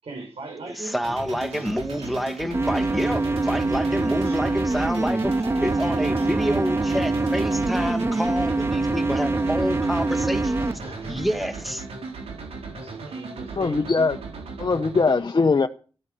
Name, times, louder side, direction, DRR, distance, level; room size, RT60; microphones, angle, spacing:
voice 1, 0.0-1.0 1.5-2.1 4.2-4.4 6.2-6.3 10.6-11.2 12.7-13.8, right 3 dB, 70° right, 5.8 m, -40 dB
voice 2, 0.7-5.3 5.6-10.6 11.1-11.8, equal, ahead, 2.1 m, -28 dB
sound 1, 1.0-15.1, right 4 dB, 90° right, 3.9 m, -37 dB
sound 2, 2.5-10.7, right 2 dB, 25° right, 0.8 m, -24 dB
sound 3, 4.3-12.9, right 2 dB, 50° right, 3.4 m, -38 dB
voice 3, 13.6-14.2 14.6-15.7, left 4 dB, 45° left, 1.0 m, -21 dB
15.5 x 9.5 x 6.9 m
cardioid pair, 60°, 10 cm